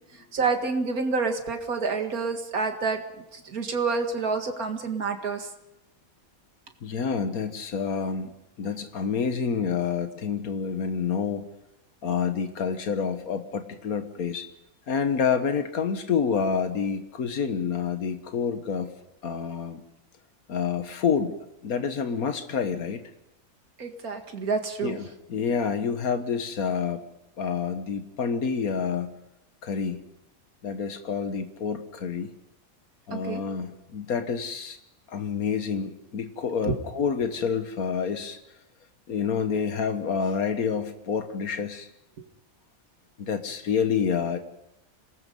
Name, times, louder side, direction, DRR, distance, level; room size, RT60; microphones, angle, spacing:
voice 1, 0.3-3.0 3.3-5.5 23.8-25.0 33.1-33.4 36.6-36.7, right 4 dB, 90° right, 5 dB, 2.3 m, -28 dB
voice 2, 6.8-8.3 8.6-11.5 12.0-14.5 14.9-18.9 19.2-19.8 20.5-21.3 21.6-23.0 24.8-25.0 25.3-27.0 27.4-29.2 29.6-30.0 30.6-32.3 33.1-34.8 35.1-38.4 39.1-41.9 43.2-44.4, left 6 dB, 85° left, 8 dB, 1.8 m, -28 dB
27.5 x 19.0 x 5.4 m, 0.92 s
omnidirectional pair, 1.5 m